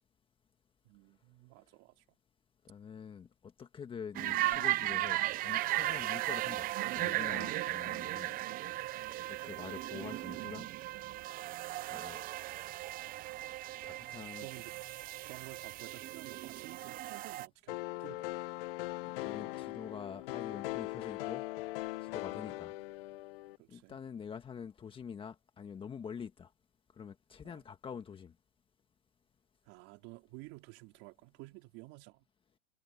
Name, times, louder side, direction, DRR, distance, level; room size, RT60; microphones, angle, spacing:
voice 1, 0.8-2.0 7.8-8.0 10.0-10.1 14.4-14.8 15.2-18.4 22.3-22.6 23.6-24.0 27.4-27.6 29.6-32.2, right 23 dB, 40° right, 3.4 m, -53 dB
voice 2, 2.6-6.7 6.9-8.4 9.3-10.7 11.9-12.2 13.8-14.5 19.0-21.4 22.0-22.7 23.7-26.5 26.9-28.3, left 7 dB, 15° left, 1.6 m, -46 dB
sound 1, 4.2-17.5, right 16 dB, 25° right, 0.8 m, -36 dB
sound 2, 17.7-23.6, left 19 dB, 50° left, 1.1 m, -40 dB
hypercardioid pair, 140°, 35 cm